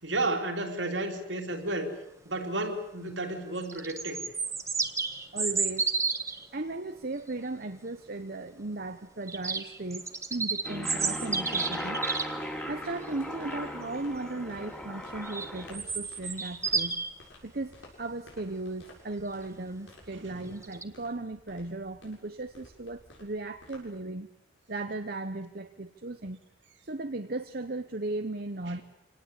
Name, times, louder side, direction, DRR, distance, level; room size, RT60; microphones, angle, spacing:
voice 1, 0.0-1.9 2.2-4.2 12.1-12.2 20.1-20.5 28.6-28.7, right 2 dB, 75° right, 3 dB, 3.5 m, -32 dB
sound 1, 3.6-6.5 9.3-12.3 15.2-17.1 20.6-20.8, right 4 dB, 15° right, 1.2 m, -31 dB
voice 2, 5.3-5.9 6.5-12.0 12.7-17.0 17.4-24.3 24.7-26.4 26.8-28.8, right 2 dB, 55° right, 6 dB, 1.0 m, -36 dB
Aircraft, 10.6-15.8, equal, 10° left, 2.8 m, -38 dB
sound 2, 11.0-24.0, left 2 dB, 90° left, 7.8 m, -55 dB
26.0 x 18.5 x 8.3 m, 0.81 s
head